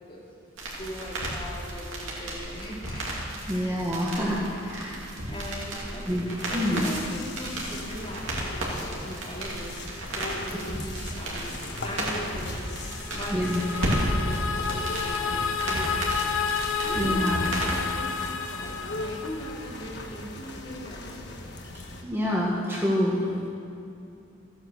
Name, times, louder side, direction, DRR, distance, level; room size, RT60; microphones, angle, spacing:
voice 1, 0.6-3.1 3.5-3.9 5.3-12.6 13.1-16.4 16.8-21.4, equal, 25° left, -5 dB, 2.7 m, -39 dB
sound 1, 0.6-17.8, right 1 dB, 65° right, 2.7 m, -33 dB
voice 2, 3.5-5.1 6.1-6.2 6.5-6.8 13.3-13.6 17.0-17.4 22.0-23.3, equal, 10° right, -5 dB, 1.3 m, -27 dB
sound 2, 6.4-22.0, left 2 dB, 55° left, 1.2 m, -40 dB
sound 3, 12.7-19.8, left 6 dB, 75° left, 0.7 m, -31 dB
14.5 x 8.9 x 6.8 m, 2.6 s
head